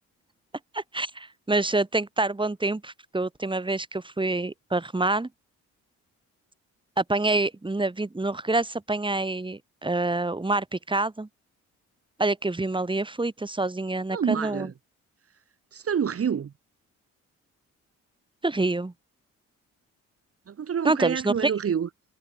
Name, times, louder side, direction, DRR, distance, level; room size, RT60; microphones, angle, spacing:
voice 1, 0.7-5.3 7.0-11.3 12.2-14.7 18.4-18.9 20.8-21.5, right 2 dB, 15° right, 7.7 m, -27 dB
voice 2, 14.1-14.7 15.7-16.5 20.5-21.9, right 7 dB, 50° right, 3.8 m, -27 dB
cardioid pair, 90°, 30 cm